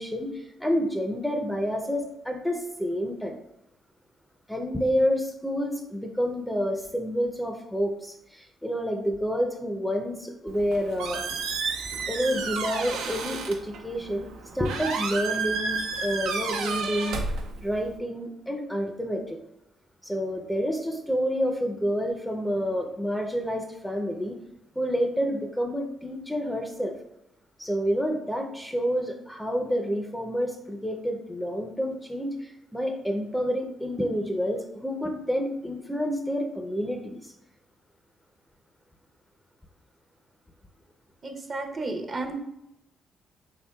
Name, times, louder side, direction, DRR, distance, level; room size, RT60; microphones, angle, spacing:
voice 1, 0.0-3.3 4.5-11.4 12.1-14.3 14.5-17.2 17.6-19.4 20.0-24.4 24.7-26.9 27.6-37.3, equal, 5° left, 3 dB, 0.5 m, -29 dB
Squeak, 10.5-18.0, right 4 dB, 90° right, 0.5 m, -32 dB
voice 2, 41.2-42.3, right 2 dB, 40° right, 4 dB, 0.6 m, -32 dB
4.3 x 3.4 x 2.2 m, 0.83 s
cardioid pair, 90°, 0 cm